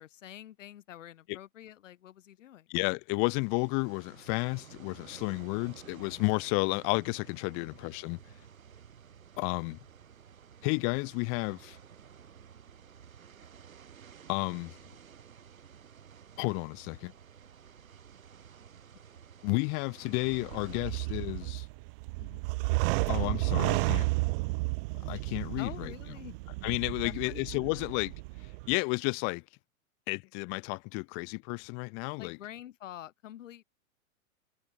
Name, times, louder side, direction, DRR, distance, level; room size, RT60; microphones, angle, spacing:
voice 1, 0.0-2.7 22.2-22.4 25.6-26.4 27.0-28.0 32.2-33.6, left 12 dB, 60° left, 5.3 m, -47 dB
voice 2, 2.7-8.2 9.4-9.8 10.6-11.8 14.3-14.7 16.4-17.1 19.4-21.7 23.1-24.1 25.1-25.9 26.6-28.1 28.7-29.4 30.1-32.4, left 38 dB, 30° left, 0.7 m, -32 dB
sound 1, 3.5-20.8, right 8 dB, 75° right, 5.4 m, -53 dB
sound 2, 20.2-28.7, right 25 dB, 40° right, 1.2 m, -32 dB
open air
figure-of-eight pair, 110°, 41 cm